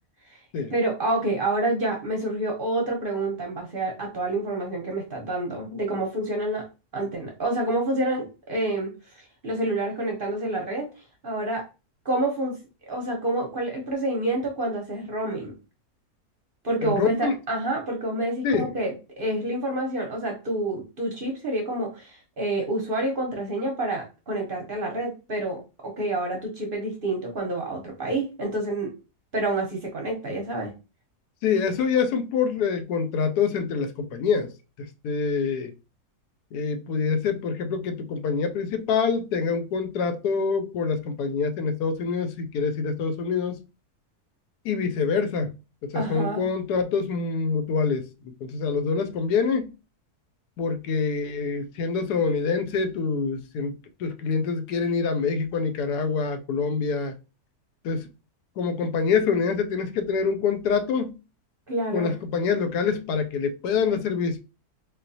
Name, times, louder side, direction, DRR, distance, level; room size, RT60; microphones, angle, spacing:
voice 1, 0.7-6.6 6.9-11.6 12.0-12.5 12.9-15.5 16.6-28.9 29.3-30.7 45.9-46.4 61.7-62.1, right 2 dB, 50° right, 0.7 m, -28 dB
voice 2, 16.8-17.3 18.4-18.7 31.4-34.5 34.8-35.7 36.5-43.6 44.6-45.5 45.8-48.1 48.4-49.7 50.6-53.7 54.0-57.1 57.8-58.1 58.6-61.2 61.9-64.4, left 5 dB, 90° left, 1.1 m, -25 dB
4.0 x 2.4 x 2.6 m
omnidirectional pair, 1.6 m